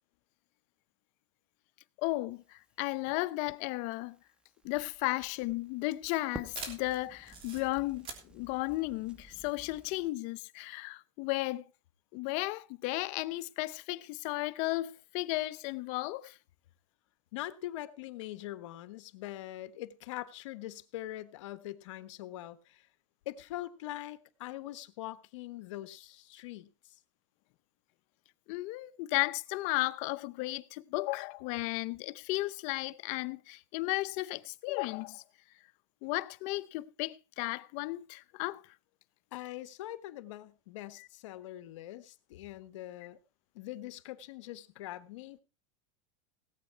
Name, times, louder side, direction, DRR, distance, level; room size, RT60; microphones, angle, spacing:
voice 1, 2.0-4.2 4.6-11.6 12.1-16.4 28.5-35.2 36.0-38.6 41.0-41.1, left 20 dB, 50° left, 0.8 m, -34 dB
Crackle, 2.3-10.1, right 1 dB, 5° right, 1.1 m, -53 dB
sound 1, 4.6-9.8, right 5 dB, 35° right, 3.3 m, -48 dB
voice 2, 17.3-22.9 23.2-26.9 39.3-43.2 43.5-45.4, left 15 dB, 70° left, 1.3 m, -43 dB
17.5 x 8.3 x 4.5 m
supercardioid pair, 140°, 16 cm